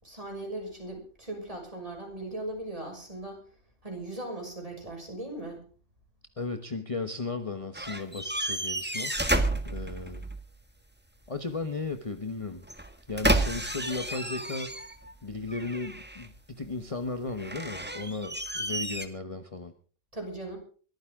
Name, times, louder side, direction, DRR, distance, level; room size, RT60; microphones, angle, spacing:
voice 1, 0.0-3.4 3.8-5.6 20.1-20.6, right 1 dB, 30° right, 2 dB, 6.2 m, -38 dB
voice 2, 6.4-9.2 9.6-10.2 11.3-12.7 13.1-14.8 15.2-19.7, left 3 dB, 25° left, 7 dB, 1.2 m, -35 dB
sound 1, 7.7-10.4 12.6-15.1 15.5-16.4 17.4-19.1, right 1 dB, 10° right, 1.6 m, -31 dB
22.5 x 14.5 x 3.7 m, 0.41 s
omnidirectional pair, 1.3 m